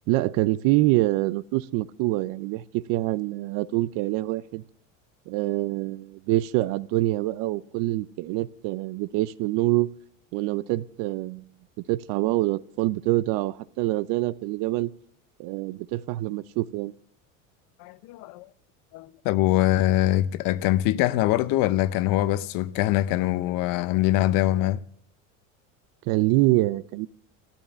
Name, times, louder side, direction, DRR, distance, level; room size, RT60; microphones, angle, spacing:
voice 1, 0.1-4.6 5.3-9.9 10.3-11.5 11.9-14.9 15.4-16.9 26.1-27.1, right 18 dB, 60° right, 0.6 m, -25 dB
voice 2, 17.8-18.5 18.9-24.8, left 15 dB, 55° left, 0.7 m, -23 dB
13.0 x 10.0 x 6.8 m
supercardioid pair, 105°, 39 cm